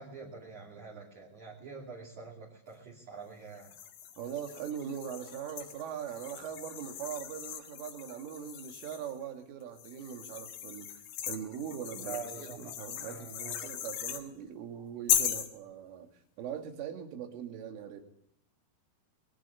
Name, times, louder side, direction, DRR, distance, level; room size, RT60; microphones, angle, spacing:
voice 1, 0.0-3.7 12.0-12.8 13.1-13.7, right 5 dB, 45° right, 3.5 m, -45 dB
sound 1, 3.6-9.2 9.8-14.2 15.1-15.5, left 10 dB, 75° left, 3.7 m, -37 dB
voice 2, 4.2-10.9 11.3-16.1 16.4-18.0, right 8 dB, 90° right, 4.7 m, -41 dB
21.0 x 16.0 x 8.4 m
omnidirectional pair, 5.5 m